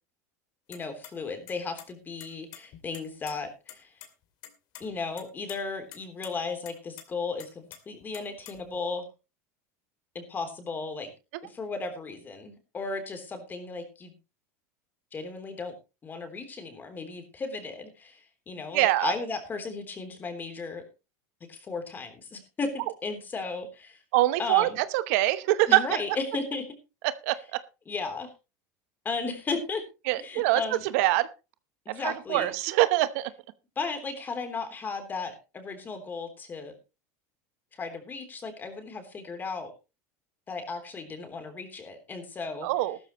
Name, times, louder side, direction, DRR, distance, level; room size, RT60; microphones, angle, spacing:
sound 1, 0.7-1.1 1.5-1.9 2.2-3.3 3.7-3.8 4.0-4.1 4.4-4.8 5.2-5.6 5.9-6.3 6.7-7.0 7.4-8.8, left 11 dB, 50° left, 2.4 m, -46 dB
voice 1, 0.7-3.9 4.8-9.1 10.1-11.1 11.4-14.1 15.1-15.7 16.0-20.8 21.5-24.0 24.4-24.8 25.7-26.6 27.9-28.3 29.0-29.8 30.2-30.8 31.8-32.5 33.7-36.8 37.7-39.7 40.5-42.7, left 4 dB, 20° left, 7 dB, 3.4 m, -35 dB
voice 2, 18.7-19.1 24.1-26.0 27.0-27.6 30.1-31.3 31.9-33.3 42.6-43.0, right 16 dB, 70° right, 14 dB, 0.9 m, -24 dB
14.5 x 13.0 x 3.0 m, 0.29 s
supercardioid pair, 130°, 8 cm